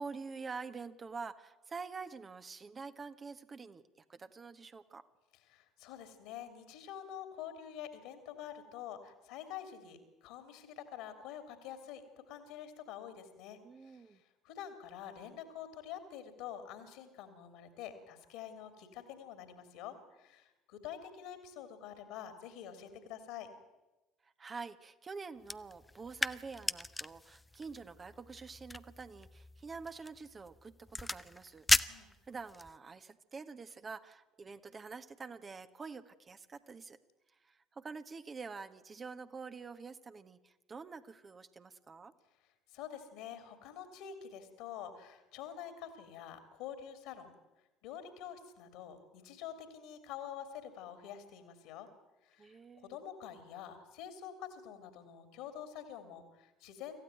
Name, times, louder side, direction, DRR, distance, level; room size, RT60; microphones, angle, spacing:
voice 1, 0.0-3.8 4.1-5.0 13.6-14.2 24.2-37.0 37.4-42.1 52.4-53.0, right 4 dB, 30° right, 9 dB, 1.5 m, -47 dB
voice 2, 5.5-12.0 12.3-23.5 31.8-32.1 42.7-47.3 47.8-51.9 52.2-57.0, left 9 dB, 65° left, 9 dB, 3.0 m, -47 dB
sound 1, 25.4-32.8, left 2 dB, 15° left, 0.7 m, -37 dB
26.0 x 15.5 x 9.2 m, 1.1 s
figure-of-eight pair, 55°, 0 cm